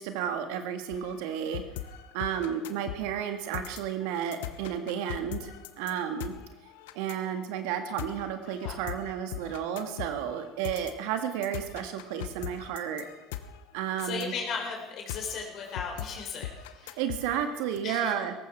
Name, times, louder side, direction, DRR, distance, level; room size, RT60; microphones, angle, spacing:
voice 1, 0.0-1.6 2.1-6.3 6.9-13.1 13.7-14.3 17.0-18.3, right 9 dB, 75° right, 8 dB, 1.7 m, -32 dB
sound 1, 0.9-17.8, left 11 dB, 80° left, 0.9 m, -41 dB
voice 2, 8.5-8.8 14.0-17.0 17.8-18.1, left 5 dB, 60° left, 1 dB, 3.7 m, -36 dB
17.5 x 15.0 x 4.5 m, 1.0 s
hypercardioid pair, 65°, 0 cm